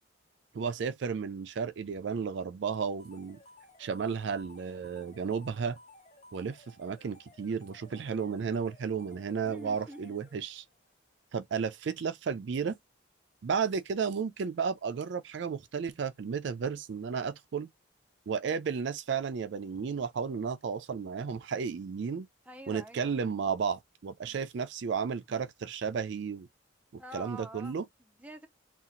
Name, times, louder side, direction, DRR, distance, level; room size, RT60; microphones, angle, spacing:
voice 1, 0.5-3.4 3.8-5.8 6.3-10.6 11.3-12.8 13.4-17.7 18.3-22.3 22.7-26.5 26.9-27.8, right 6 dB, 65° right, 0.4 m, -33 dB
sound 1, 3.0-10.8, left 1 dB, 35° left, 0.7 m, -57 dB
voice 2, 9.4-10.1 22.5-23.1 24.2-24.5 27.0-28.5, right 1 dB, 10° right, 0.5 m, -47 dB
2.8 x 2.4 x 3.7 m
head